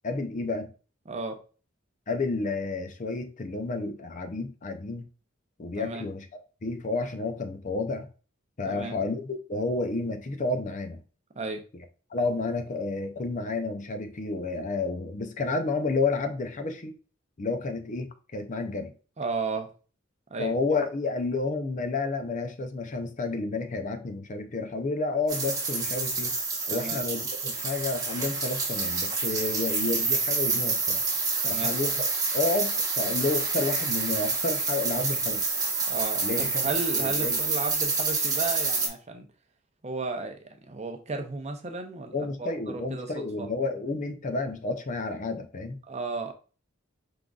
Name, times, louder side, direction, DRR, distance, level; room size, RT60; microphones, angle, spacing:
voice 1, 0.0-0.7 2.1-5.0 5.6-6.3 6.6-8.1 8.6-11.0 12.1-17.0 17.4-18.9 20.4-26.3 26.7-31.0 31.5-31.9 32.3-35.4 36.2-36.7 37.0-37.4 42.1-45.8, left 3 dB, 40° left, 0.5 m, -30 dB
voice 2, 1.1-1.4 5.8-6.0 8.6-9.0 11.4-11.6 19.2-19.7 20.3-20.5 26.7-27.0 31.4-31.7 35.9-39.3 39.8-40.4 40.7-43.5 45.9-46.3, right 3 dB, 35° right, 0.6 m, -34 dB
sound 1, 25.3-38.9, right 4 dB, 15° right, 1.0 m, -28 dB
4.9 x 3.8 x 2.3 m
head